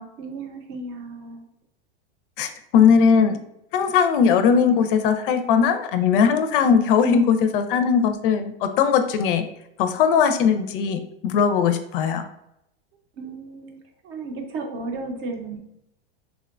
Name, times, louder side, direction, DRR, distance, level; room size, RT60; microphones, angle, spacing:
voice 1, 0.2-1.4 13.2-13.8 14.0-15.6, right 3 dB, 40° right, 3 dB, 0.6 m, -34 dB
voice 2, 2.4-3.4 3.7-9.5 9.8-12.2, left 6 dB, 60° left, 8 dB, 0.4 m, -19 dB
3.6 x 2.2 x 2.4 m, 0.81 s
supercardioid pair, 135°, 31 cm